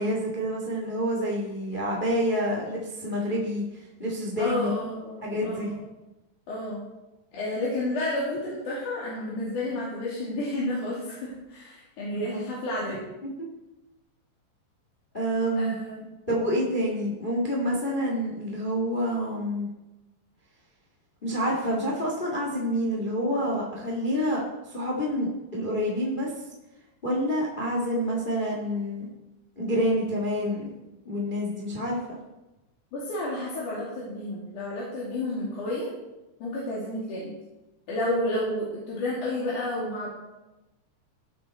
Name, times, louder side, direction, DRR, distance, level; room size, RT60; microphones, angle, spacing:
voice 1, 0.0-4.8 5.2-5.7 12.3-12.4 13.2-13.3 15.1-15.8 16.3-19.7 21.2-24.4 24.7-26.3 27.0-29.1 29.5-30.7 31.0-32.0, equal, 80° left, -2 dB, 0.4 m, -28 dB
voice 2, 4.4-5.7 6.5-6.8 7.3-13.0 15.6-16.1 32.9-35.9 36.4-37.3 37.9-40.1, left 1 dB, 50° left, -7 dB, 3.5 m, -31 dB
14.5 x 7.8 x 4.3 m, 1.0 s
omnidirectional pair, 5.0 m